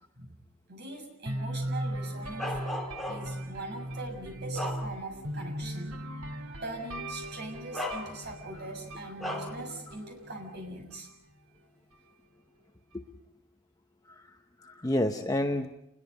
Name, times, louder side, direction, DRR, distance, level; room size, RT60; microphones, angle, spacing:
voice 1, 0.7-2.5 3.1-6.0 6.6-11.1, right 2 dB, 50° right, 2 dB, 6.6 m, -41 dB
sound 1, 1.3-11.1, right 1 dB, 80° right, 2.1 m, -38 dB
Bark, 2.4-3.5 4.1-5.3 5.7-5.9 7.0-7.2 7.7-8.5 9.2-9.6, left 1 dB, ahead, 2.4 m, -37 dB
voice 2, 14.1-15.7, left 1 dB, 15° left, 4 dB, 0.9 m, -30 dB
29.5 x 21.5 x 5.4 m, 0.79 s
head